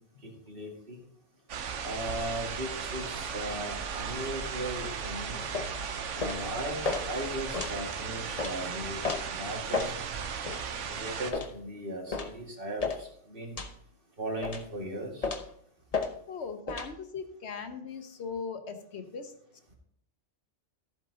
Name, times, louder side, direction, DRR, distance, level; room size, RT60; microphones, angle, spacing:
voice 1, 0.2-1.0 1.8-5.4 6.1-9.0 9.3-9.9 10.5-10.6 10.9-13.6 14.2-15.3, right 1 dB, 50° right, 0 dB, 2.2 m, -37 dB
sound 1, 1.5-11.3, right 6 dB, 80° right, 1.2 m, -36 dB
sound 2, 5.5-5.7 6.2-6.4 6.8-7.0 7.5-7.8 8.4-8.5 9.0-9.2 9.7-9.9 10.5-10.6 11.3-11.5 12.1-12.3 12.8-13.0 13.6-13.8 14.4-14.7 15.2-15.5 15.9-16.1 16.7-16.9, left 4 dB, 35° left, 0.9 m, -32 dB
voice 2, 16.3-19.3, left 5 dB, 65° left, 8 dB, 1.2 m, -39 dB
14.0 x 8.0 x 2.8 m, 0.68 s
omnidirectional pair, 1.2 m